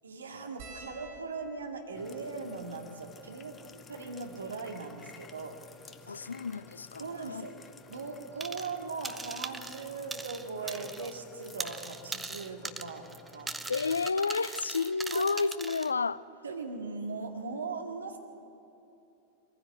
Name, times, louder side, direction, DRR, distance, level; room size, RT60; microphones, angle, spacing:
voice 1, 0.0-3.6 3.9-5.6 7.0-7.5 7.9-13.0 13.3-13.5 15.1-15.2 16.4-18.2, right 4 dB, 70° right, 2.2 m, -39 dB
sound 1, 0.6-5.2 5.9-6.0 6.2-6.4 7.7-7.9 9.4-9.5 9.7-9.9, right 1 dB, 50° right, 5.4 m, -53 dB
sound 2, 1.9-14.1, left 5 dB, 20° left, 0.9 m, -53 dB
voice 2, 6.1-7.5 13.7-16.2, left 4 dB, 75° left, 0.4 m, -31 dB
sound 3, 8.4-8.8 9.0-11.2 11.4-15.9, right 3 dB, 10° right, 0.8 m, -40 dB
23.5 x 15.5 x 8.6 m
figure-of-eight pair, 90°, 0 cm